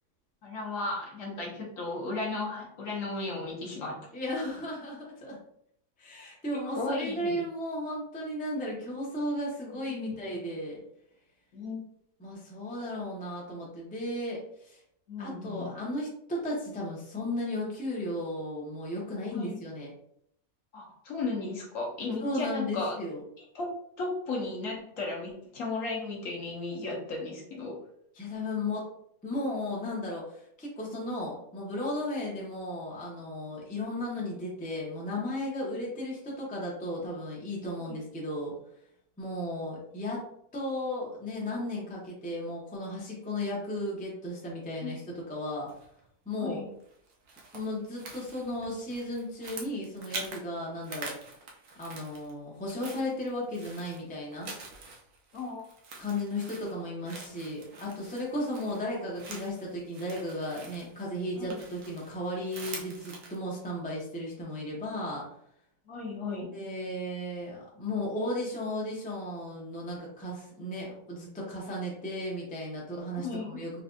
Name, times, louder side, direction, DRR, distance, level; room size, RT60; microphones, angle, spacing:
voice 1, 0.4-4.1 6.5-7.4 9.9-10.4 11.5-11.8 12.8-12.9 15.1-15.7 19.3-19.6 20.7-23.0 23.4-23.7 24.0-27.8 37.8-38.0 44.8-44.9 46.4-46.7 55.3-55.7 61.4-61.6 65.9-66.5 73.2-73.6, left 3 dB, 60° left, -1 dB, 1.0 m, -35 dB
voice 2, 4.1-5.4 6.0-10.8 12.2-14.8 15.2-19.9 22.2-23.2 28.2-28.9 29.2-38.5 39.2-40.2 40.5-45.0 45.3-45.7 46.3-46.6 47.5-51.1 51.8-54.5 56.0-65.3 66.5-73.7, left 1 dB, 10° left, -4 dB, 0.4 m, -35 dB
sound 1, 45.7-46.1 46.8-50.5 50.7-52.3 52.6-63.4, right 3 dB, 75° right, 1.2 m, -45 dB
4.1 x 2.3 x 2.5 m, 0.71 s
omnidirectional pair, 1.7 m